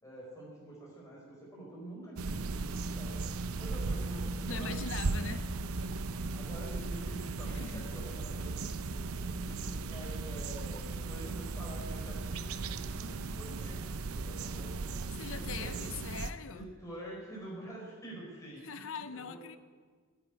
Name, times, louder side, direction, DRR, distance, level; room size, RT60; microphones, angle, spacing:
voice 1, 0.0-3.2 3.6-5.3 6.3-15.9 16.5-19.4, right 1 dB, 15° left, 4.8 m, -47 dB
sound 1, 2.2-16.3, right 3 dB, 85° right, 0.7 m, -37 dB
voice 2, 4.4-5.5 7.4-7.9 15.1-16.7 18.6-19.6, left 5 dB, 60° left, 0.7 m, -42 dB
11.0 x 11.0 x 9.2 m
head